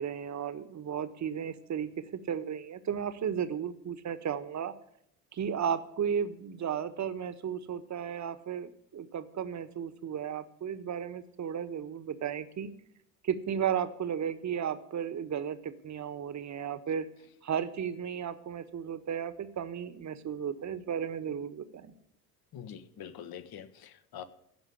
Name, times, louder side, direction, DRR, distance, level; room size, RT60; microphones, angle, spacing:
voice 1, 0.0-4.7 5.3-12.7 13.2-17.1 17.4-21.9, right 8 dB, 35° right, 12 dB, 1.3 m, -34 dB
voice 2, 22.5-24.2, left 9 dB, 50° left, 12 dB, 1.4 m, -45 dB
16.0 x 5.6 x 9.7 m, 0.73 s
hypercardioid pair, 60°, 47 cm